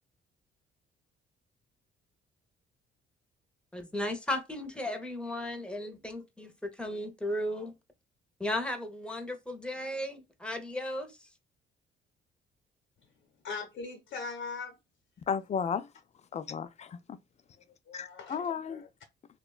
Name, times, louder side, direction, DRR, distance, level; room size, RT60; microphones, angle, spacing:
voice 1, 3.7-7.7 8.4-11.3, left 1 dB, 5° left, 0.7 m, -35 dB
voice 2, 13.4-14.8 17.9-18.9, left 4 dB, 65° left, 0.8 m, -40 dB
voice 3, 15.3-15.9 16.3-17.2 17.9-18.8, left 6 dB, 35° left, 0.4 m, -34 dB
2.9 x 2.2 x 2.3 m
cardioid pair, 90°, 20 cm